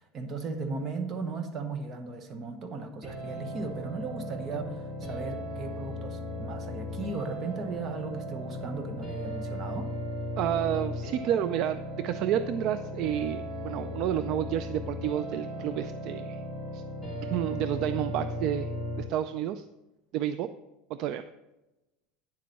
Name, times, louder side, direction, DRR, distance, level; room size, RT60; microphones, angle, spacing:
voice 1, 0.0-9.9, right 3 dB, 30° right, 7 dB, 1.1 m, -36 dB
sound 1, 3.0-19.0, left 1 dB, 10° right, 2.5 m, -36 dB
voice 2, 10.4-16.4 16.7-16.8 17.3-18.7 19.0-19.6 20.1-20.5 20.9-21.2, right 11 dB, 50° right, 12 dB, 0.3 m, -30 dB
9.5 x 7.6 x 4.1 m, 1.0 s
cardioid pair, 155°, 0 cm